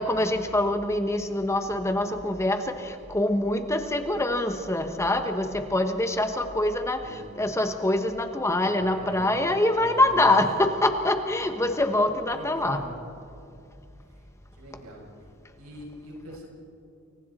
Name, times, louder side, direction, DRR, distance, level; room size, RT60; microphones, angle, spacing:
voice 1, 0.0-2.6 3.1-7.0 7.4-12.8, left 1 dB, 15° left, 7 dB, 1.1 m, -24 dB
voice 2, 8.7-9.4 9.7-10.3 12.3-13.0 14.5-15.0 15.6-16.5, equal, 85° right, -1 dB, 6.3 m, -43 dB
29.5 x 23.5 x 4.2 m, 2.5 s
head